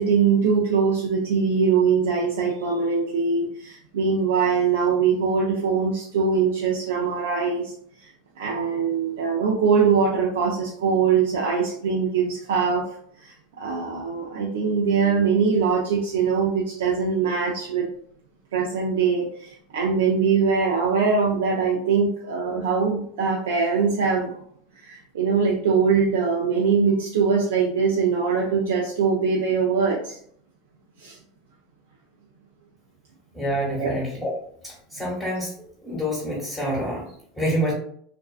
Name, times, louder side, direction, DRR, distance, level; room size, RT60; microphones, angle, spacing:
voice 1, 0.0-7.7 8.0-8.1 8.4-12.9 13.2-17.9 18.5-24.4 24.8-30.2 31.0-31.2 33.8-33.9, right 5 dB, 80° right, -2 dB, 0.4 m, -22 dB
voice 2, 33.3-34.3 34.6-35.5 35.8-37.7, equal, 10° left, -7 dB, 1.1 m, -27 dB
2.5 x 2.3 x 2.3 m, 0.63 s
hypercardioid pair, 90°, 0 cm